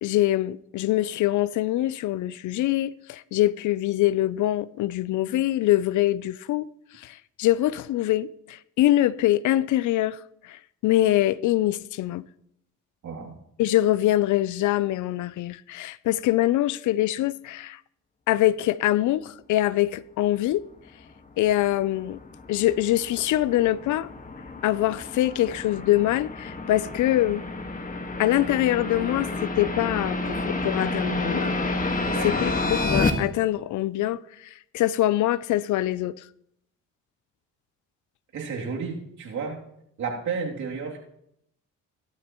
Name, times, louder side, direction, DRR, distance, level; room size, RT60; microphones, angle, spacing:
voice 1, 0.0-6.7 7.0-12.2 13.6-17.8 18.3-20.7 21.4-22.2 22.5-24.1 24.6-27.4 28.2-31.5 32.2-36.2, left 14 dB, 75° left, 0.5 m, -24 dB
voice 2, 13.0-13.4 32.1-32.3 38.3-39.6 40.0-41.0, right 5 dB, 70° right, 2.9 m, -32 dB
sound 1, 21.6-33.1, left 2 dB, 25° left, 1.6 m, -30 dB
16.5 x 12.0 x 3.0 m
cardioid pair, 90°, 30 cm